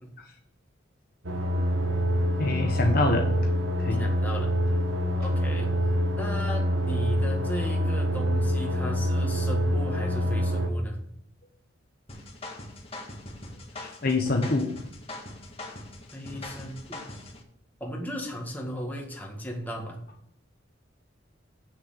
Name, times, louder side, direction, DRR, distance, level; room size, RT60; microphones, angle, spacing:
sound 1, 1.2-10.7, equal, 80° right, 1.4 m, -26 dB
voice 1, 2.4-3.3 3.8-4.1 13.8-14.7, left 2 dB, 50° left, 3 dB, 1.1 m, -25 dB
voice 2, 3.9-4.5 5.2-5.7 6.1-11.0 16.1-17.0 17.8-20.0, equal, 10° left, 0 dB, 1.9 m, -36 dB
sound 2, 12.1-17.4, left 2 dB, 30° left, 1.7 m, -42 dB
8.0 x 6.7 x 6.7 m, 0.72 s
head